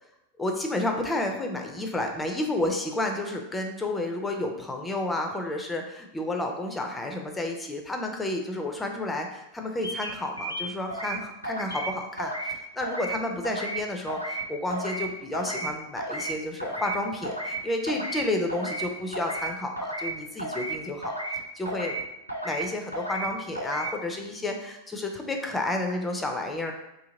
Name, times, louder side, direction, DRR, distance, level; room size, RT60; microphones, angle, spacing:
voice 1, 0.4-21.1 21.5-21.9 22.4-26.7, left 2 dB, 10° left, 3 dB, 0.5 m, -31 dB
sound 1, 9.8-10.1 10.4-11.2 11.4-11.9 12.2-12.5 12.8-13.2 13.4-13.8 14.1-14.4 14.7-15.1 15.3-15.7 16.0-16.3 16.6-17.0 17.2-17.6 17.9-18.2 18.5-18.9 19.1-19.5 19.8-20.1 20.4-20.7 21.0-21.4 21.7-22.0 22.3-22.6 22.9-23.3 23.6-23.9, right 2 dB, 90° right, 0.5 m, -33 dB
2.8 x 2.8 x 3.7 m, 0.88 s
figure-of-eight pair, 90°, 0 cm